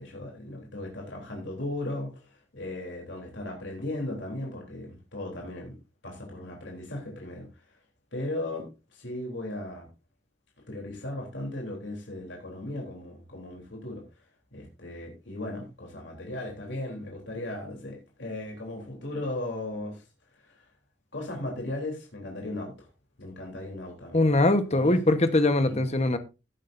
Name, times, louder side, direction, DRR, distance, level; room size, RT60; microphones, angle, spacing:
voice 1, 0.0-5.7 6.0-7.8 8.1-9.9 10.7-14.2 14.5-20.1 20.3-20.7 21.1-22.9 23.2-24.2 24.7-25.0 25.6-25.8, left 1 dB, 80° left, 3.6 m, -37 dB
voice 2, 24.1-26.2, left 2 dB, 35° left, 1.2 m, -22 dB
17.0 x 8.3 x 2.7 m
head